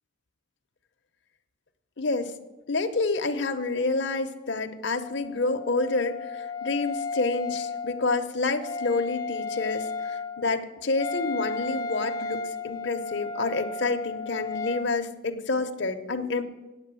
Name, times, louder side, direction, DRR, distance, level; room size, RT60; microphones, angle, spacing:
voice 1, 2.0-2.3 2.7-16.4, left 3 dB, 60° left, 6 dB, 0.8 m, -28 dB
Wind instrument woodwind instrument, 4.9-14.9, left 3 dB, 15° left, 0.3 m, -34 dB
8.9 x 7.9 x 7.6 m, 1.1 s
head